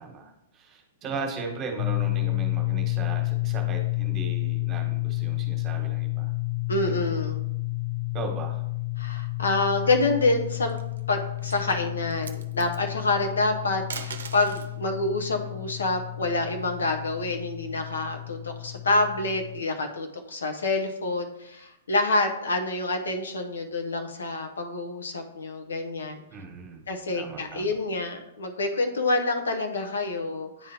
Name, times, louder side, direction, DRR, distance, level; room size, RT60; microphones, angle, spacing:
voice 1, 0.0-6.3 8.1-8.6 26.3-26.8 27.1-27.7, right 4 dB, 25° right, 3 dB, 1.2 m, -37 dB
sound 1, 1.8-19.6, left 22 dB, 60° left, 0.4 m, -31 dB
voice 2, 6.7-7.4 9.0-10.8 11.1-26.2 26.9-30.7, left 2 dB, 75° left, 5 dB, 0.8 m, -27 dB
sound 2, 10.5-11.0 11.4-11.6 12.1-12.8 13.7-14.8 16.2-17.4, right 6 dB, 70° right, 0.6 m, -40 dB
9.7 x 3.7 x 2.9 m, 0.84 s
figure-of-eight pair, 110°, 0 cm